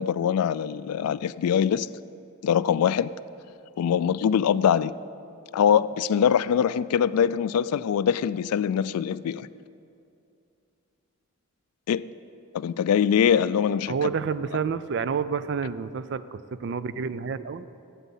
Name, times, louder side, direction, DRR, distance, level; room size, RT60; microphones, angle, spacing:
voice 1, 0.0-1.9 2.4-3.1 3.8-4.9 5.5-9.5 11.9-12.0 12.5-14.1, left 8 dB, 85° left, 16 dB, 0.3 m, -23 dB
voice 2, 13.9-17.7, right 6 dB, 50° right, 14 dB, 0.3 m, -29 dB
9.3 x 8.1 x 8.2 m, 2.6 s
head